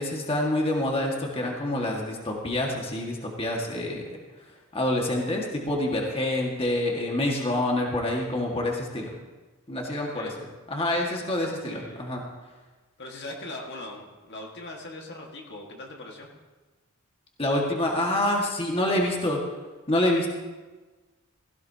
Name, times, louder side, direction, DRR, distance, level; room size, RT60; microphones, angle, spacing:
voice 1, 0.0-4.0 4.7-9.1 9.7-12.2 17.4-19.4 19.9-20.3, left 1 dB, 25° left, -1 dB, 1.8 m, -27 dB
voice 2, 11.2-12.2 13.0-16.3, left 1 dB, 55° left, 0 dB, 1.7 m, -41 dB
17.0 x 15.5 x 2.8 m, 1.3 s
head